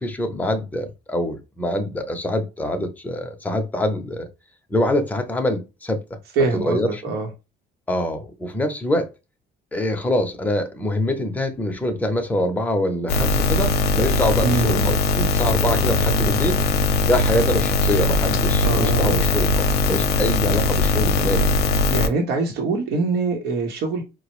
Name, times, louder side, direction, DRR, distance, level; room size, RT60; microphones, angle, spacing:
voice 1, 0.0-4.3 4.7-6.0 6.5-7.0 7.9-9.1 9.7-16.6 17.0-19.5 19.9-21.5, left 1 dB, 10° left, 0.6 m, -24 dB
voice 2, 6.4-7.3 14.4-14.9 18.6-19.3 21.9-24.0, right 3 dB, 80° right, 0.9 m, -23 dB
sound 1, 13.1-22.1, left 3 dB, 75° left, 0.5 m, -20 dB
4.4 x 2.0 x 3.0 m
cardioid pair, 110°, 17 cm